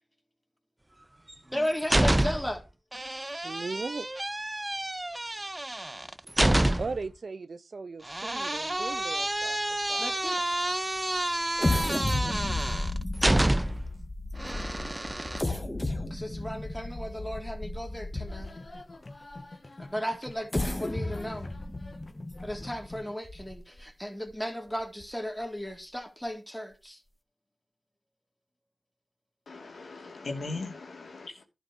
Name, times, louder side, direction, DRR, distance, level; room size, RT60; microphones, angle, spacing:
sound 1, 1.3-2.6 2.9-7.1 8.1-13.9 14.4-15.4, right 1 dB, 20° right, 0.7 m, -28 dB
voice 1, 1.5-2.6 10.0-10.5 16.0-18.6 19.8-21.5 22.4-27.0, equal, 5° left, 3.4 m, -35 dB
voice 2, 3.4-4.1 6.8-10.1 11.6-12.4, right 4 dB, 55° right, 0.6 m, -38 dB
sound 2, 11.6-18.7 19.3-19.4 20.3-23.8 24.3-24.4 24.8-25.0, left 2 dB, 20° left, 2.2 m, -33 dB
sound 3, 18.1-23.1, left 2 dB, 35° left, 1.8 m, -47 dB
voice 3, 29.5-31.4, left 3 dB, 65° left, 2.9 m, -39 dB
11.5 x 5.2 x 6.2 m
cardioid pair, 40°, 0 cm